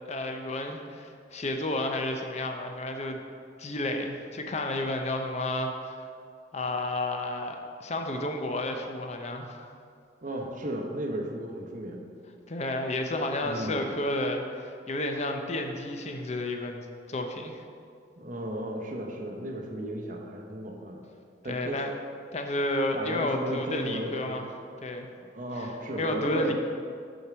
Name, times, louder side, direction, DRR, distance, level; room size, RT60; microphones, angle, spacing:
voice 1, 0.1-3.2 3.6-6.1 6.5-9.7 12.5-17.6 21.5-21.9 22.3-24.5 24.8-25.1 25.6-25.7 26.0-26.5, left 1 dB, 40° left, 4 dB, 0.6 m, -31 dB
voice 2, 10.2-12.0 13.4-13.8 18.2-21.1 21.4-21.8 22.9-24.4 25.2-26.5, right 1 dB, 45° right, 1 dB, 0.9 m, -35 dB
6.5 x 4.4 x 6.1 m, 2.2 s
head